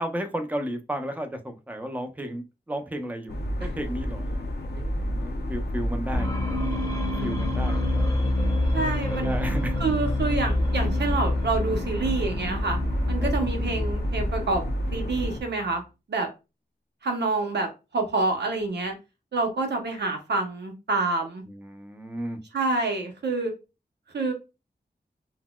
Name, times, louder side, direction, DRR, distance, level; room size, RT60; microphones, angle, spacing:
voice 1, 0.0-3.3 3.6-6.5 7.2-8.1 9.1-9.8 13.2-13.5 21.5-22.4, equal, 10° right, 6 dB, 0.6 m, -34 dB
sound 1, 3.3-15.4, equal, 75° left, 0.5 m, -30 dB
sound 2, 6.1-15.7, left 2 dB, 20° left, 0.8 m, -28 dB
voice 2, 8.7-9.3 9.8-12.8 13.1-14.6 14.9-15.8 16.1-16.3 17.0-17.7 17.9-18.9 19.3-21.4 22.5-23.5 24.1-24.3, right 3 dB, 90° right, 3 dB, 0.7 m, -27 dB
3.9 x 2.1 x 2.2 m, 0.28 s
wide cardioid pair, 55°, 17 cm